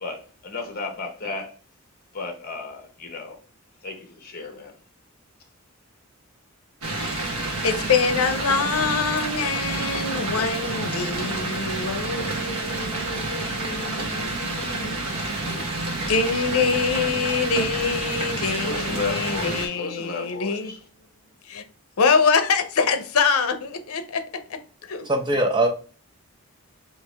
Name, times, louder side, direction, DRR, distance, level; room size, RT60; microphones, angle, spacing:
voice 1, 0.0-1.5 2.1-3.4 3.8-4.7 15.0-15.7 18.5-20.6, left 4 dB, 40° left, 0.9 m, -34 dB
sound 1, 6.8-19.7, right 2 dB, 80° right, 1.2 m, -29 dB
voice 2, 6.9-7.3 7.6-15.2 16.1-20.7 21.5-21.6 22.0-24.6 24.9-25.1, left 5 dB, 80° left, 0.6 m, -25 dB
voice 3, 25.1-25.7, right 1 dB, 20° right, 0.7 m, -21 dB
4.7 x 2.9 x 3.4 m
head